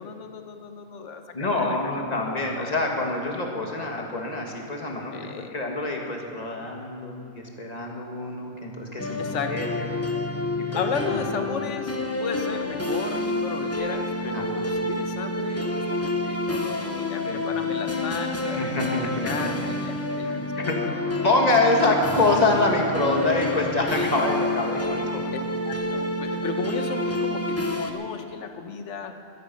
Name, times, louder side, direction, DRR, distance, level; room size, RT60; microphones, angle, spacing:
voice 1, 0.0-1.8 2.3-2.8 5.1-5.6 9.2-9.8 10.7-20.5 20.9-21.2 21.8-21.9 23.9-24.1 25.3-29.1, left 5 dB, 70° left, 7 dB, 1.3 m, -35 dB
voice 2, 1.3-9.9 10.7-10.8 11.1-11.2 14.2-14.5 17.2-17.4 18.4-19.5 20.2-20.8 21.2-25.2, left 2 dB, 30° left, 0 dB, 1.9 m, -26 dB
sound 1, 9.0-27.9, left 2 dB, 15° left, 0.9 m, -28 dB
16.0 x 13.5 x 5.4 m, 2.5 s
omnidirectional pair, 1.3 m